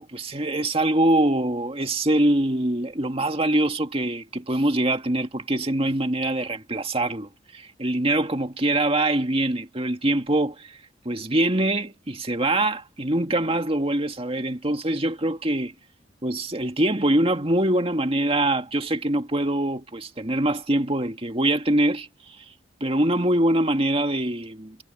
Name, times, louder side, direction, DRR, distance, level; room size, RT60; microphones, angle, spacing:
voice 1, 0.0-10.8 11.1-15.7 16.2-22.4 22.8-24.8, right 1 dB, 30° right, 1.9 m, -24 dB
head